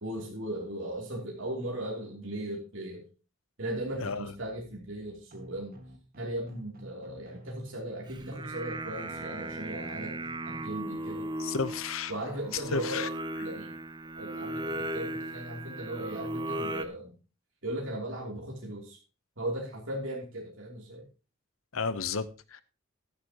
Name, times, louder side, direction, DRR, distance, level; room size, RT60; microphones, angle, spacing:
voice 1, 0.0-3.0 3.6-5.8 6.2-10.1 10.5-11.3 12.1-13.1 13.4-13.7 14.1-17.1 17.6-19.0 19.4-21.1, right 1 dB, 65° right, -3 dB, 3.1 m, -37 dB
sound 1, 3.6-10.6, right 1 dB, 45° right, 1.7 m, -50 dB
Singing, 8.1-16.9, right 1 dB, 20° right, 0.6 m, -37 dB
voice 2, 11.4-12.1 12.5-13.1 21.7-22.6, left 5 dB, 85° left, 15 dB, 0.8 m, -32 dB
14.0 x 11.0 x 2.9 m, 0.34 s
head